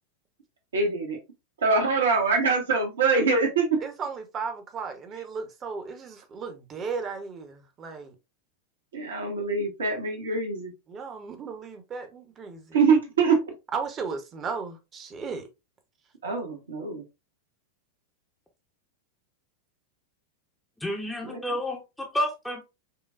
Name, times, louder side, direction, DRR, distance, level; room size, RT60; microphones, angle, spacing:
voice 1, 0.7-1.2 1.6-3.8 8.9-10.7 12.7-13.4 16.2-17.0 21.2-21.4, right 4 dB, 65° right, 1.2 m, -24 dB
voice 2, 3.8-8.1 10.9-12.7 13.7-15.5, right 5 dB, 25° right, 0.9 m, -35 dB
voice 3, 20.8-22.6, left 1 dB, 5° left, 0.8 m, -30 dB
5.6 x 2.3 x 2.4 m
figure-of-eight pair, 90°, 0 cm